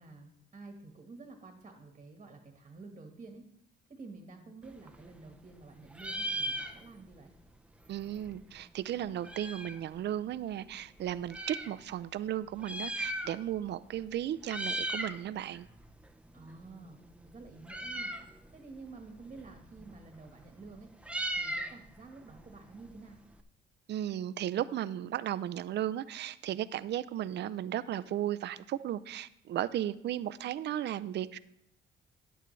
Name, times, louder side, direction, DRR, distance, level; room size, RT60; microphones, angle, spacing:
voice 1, 0.0-3.4 3.9-7.3 16.3-18.1 18.5-20.9 21.4-23.2, right 3 dB, 30° right, 4 dB, 1.4 m, -50 dB
Meow, 4.7-5.6 5.9-7.2 7.5-7.6 7.7-9.9 10.5-11.7 12.5-13.7 13.9-14.2 14.4-15.2 15.5-23.4, right 1 dB, 5° right, 0.6 m, -39 dB
voice 2, 7.9-15.7 23.9-31.4, right 11 dB, 60° right, 15 dB, 0.4 m, -35 dB
10.5 x 9.1 x 3.2 m, 0.76 s
cardioid pair, 90°, 20 cm